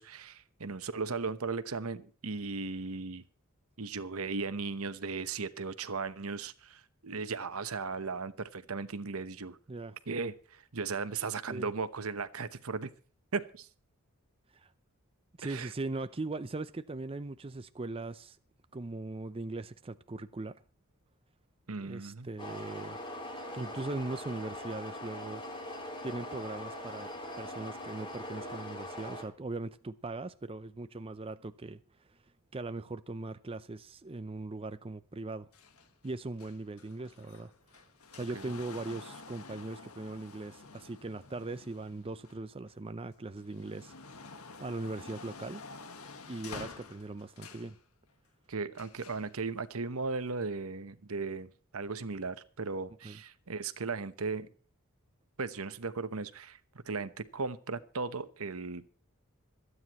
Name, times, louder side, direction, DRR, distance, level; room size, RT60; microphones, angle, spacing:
voice 1, 0.0-3.2 3.8-9.6 10.1-12.9 13.3-13.7 15.4-15.7 21.7-22.3 38.3-38.5 48.5-54.5 55.4-56.6 56.9-58.9, right 4 dB, 75° right, 1.1 m, -37 dB
voice 2, 15.4-18.4 18.7-20.6 21.8-23.0 23.5-25.4 26.0-27.1 27.4-31.8 32.5-35.5 36.0-37.8 38.1-43.9 44.6-45.6 46.3-47.8 53.0-53.2, right 2 dB, 25° right, 0.5 m, -40 dB
sound 1, 22.4-29.2, left 1 dB, 25° left, 3.1 m, -42 dB
sound 2, 35.5-42.7 43.2-47.8 48.7-49.3 50.2-50.3, left 4 dB, 80° left, 1.6 m, -49 dB
26.0 x 9.7 x 3.1 m
head